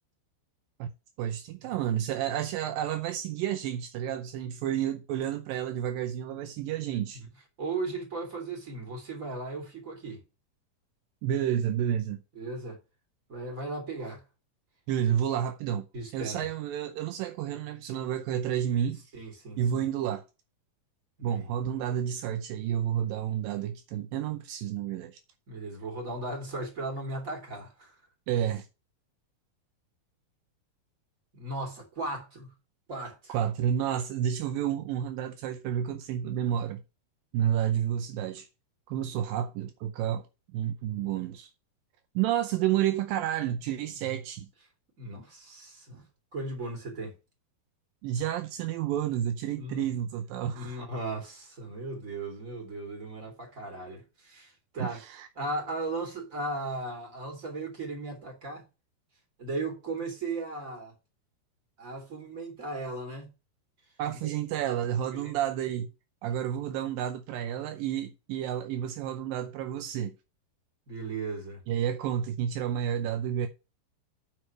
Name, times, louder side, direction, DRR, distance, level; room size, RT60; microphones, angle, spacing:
voice 1, 1.2-7.2 11.2-12.2 14.9-15.9 16.1-19.0 19.6-20.2 21.2-25.2 28.3-28.7 33.3-36.8 37.3-38.5 38.9-40.3 40.5-41.5 42.2-44.5 48.0-50.8 54.8-55.3 64.0-65.9 66.2-70.2 71.7-73.5, right 10 dB, 80° right, 2.4 m, -30 dB
voice 2, 7.6-10.2 12.3-12.8 13.3-14.2 15.9-16.5 19.1-19.8 21.2-21.5 25.5-28.0 31.3-32.5 32.9-33.4 43.9-44.0 45.0-46.0 46.3-47.2 49.6-49.9 50.5-55.0 55.3-58.6 59.4-60.9 61.8-63.3 64.2-64.3 65.1-65.3 70.9-71.6, right 2 dB, 20° right, 3.3 m, -37 dB
9.4 x 4.7 x 5.9 m
omnidirectional pair, 4.2 m